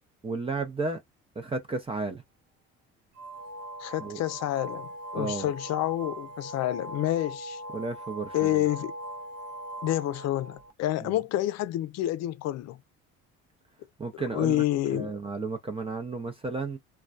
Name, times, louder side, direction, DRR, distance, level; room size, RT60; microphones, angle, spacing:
voice 1, 0.2-1.0 1.4-2.2 4.0-4.2 5.1-5.5 7.7-8.6 11.0-11.2 14.0-14.6 14.9-16.8, right 3 dB, 20° right, 0.6 m, -33 dB
sound 1, 3.2-10.7, right 1 dB, 55° right, 0.7 m, -40 dB
voice 2, 3.8-7.6 8.3-8.9 9.8-12.8 14.3-15.1, left 14 dB, 60° left, 0.5 m, -28 dB
2.2 x 2.2 x 2.5 m
cardioid pair, 95°, 29 cm